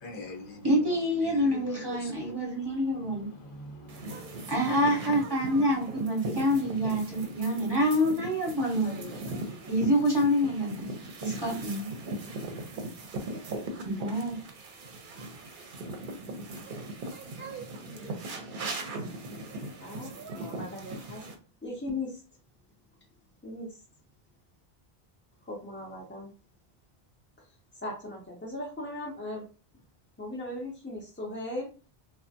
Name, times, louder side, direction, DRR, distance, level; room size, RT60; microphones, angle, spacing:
voice 1, 0.0-0.7 1.2-2.3 3.0-4.5, left 3 dB, 60° left, 0.8 m, -43 dB
voice 2, 0.6-3.3 4.5-9.0 9.7-10.8 11.2-11.9 13.8-14.4, equal, 25° right, 0.8 m, -27 dB
sound 1, 3.9-21.3, right 2 dB, 60° right, 0.7 m, -39 dB
voice 3, 8.8-9.2 17.8-18.4 19.8-21.3 21.6-22.2 23.4-23.8 25.4-26.3 27.4-27.5 27.8-29.4 30.2-31.7, left 2 dB, 20° left, 0.4 m, -38 dB
3.2 x 2.1 x 2.6 m
omnidirectional pair, 1.1 m